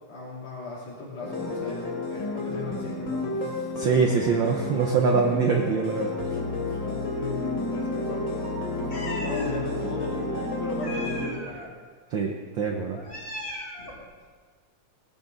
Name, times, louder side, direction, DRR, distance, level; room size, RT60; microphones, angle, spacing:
voice 1, 0.1-3.9 6.2-11.7, left 1 dB, 80° left, -7 dB, 4.8 m, -37 dB
sound 1, 1.2-11.3, left 2 dB, 40° left, 3.5 m, -31 dB
voice 2, 3.8-6.1 12.1-13.0, right 5 dB, 90° right, 2 dB, 1.0 m, -24 dB
Meow, 8.9-9.5 10.8-11.7 12.9-14.0, left 1 dB, 25° left, 1.7 m, -37 dB
18.0 x 14.0 x 4.0 m, 1.5 s
omnidirectional pair, 3.5 m